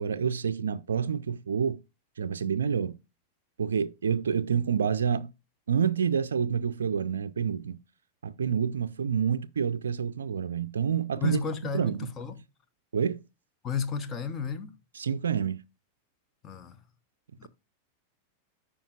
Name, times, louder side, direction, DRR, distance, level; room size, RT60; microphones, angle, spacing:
voice 1, 0.0-1.8 2.2-2.9 3.6-5.3 5.7-7.8 8.2-11.4 11.7-12.1 12.9-13.2 14.9-15.6, right 7 dB, 70° right, 0.4 m, -28 dB
voice 2, 11.2-12.4 13.6-14.8 16.4-16.8 17.4-17.5, left 6 dB, 25° left, 0.9 m, -33 dB
14.0 x 5.1 x 2.4 m
figure-of-eight pair, 90°, 0 cm